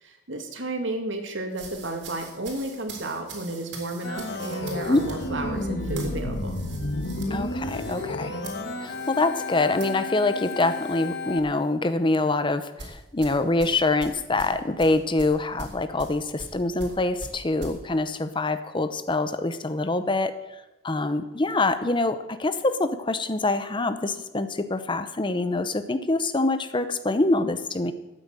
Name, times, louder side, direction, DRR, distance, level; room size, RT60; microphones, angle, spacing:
voice 1, 0.0-6.6, right 2 dB, 85° right, 4 dB, 2.4 m, -32 dB
sound 1, 1.5-11.1 11.4-11.7 12.8-17.8, right 3 dB, 65° right, 3.7 m, -44 dB
Organ, 4.0-11.4, left 2 dB, 60° left, 1.4 m, -31 dB
voice 2, 7.3-8.4 8.8-20.4 20.8-27.9, left 2 dB, 25° left, 11 dB, 0.8 m, -25 dB
13.0 x 9.2 x 7.6 m, 0.99 s
head